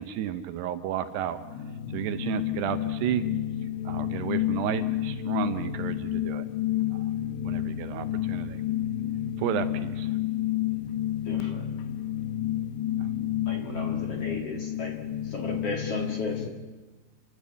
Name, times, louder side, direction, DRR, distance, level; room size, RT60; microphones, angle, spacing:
voice 1, 0.0-1.4 1.9-3.2 3.9-6.4 7.5-8.6 9.4-10.1, right 11 dB, 75° right, 2.6 m, -32 dB
voice 2, 2.3-2.9 3.2-3.5 3.9-5.5 6.1-6.3 6.6-7.2 7.5-7.6 8.1-8.3 8.6-8.8 9.6-9.7 10.0-11.5 12.4-12.6 12.9-13.6, left 13 dB, 80° left, 3.3 m, -28 dB
voice 3, 11.3-11.6 13.5-15.0 15.3-16.5, left 2 dB, 50° left, 2.0 m, -35 dB
29.0 x 12.5 x 8.3 m
omnidirectional pair, 5.2 m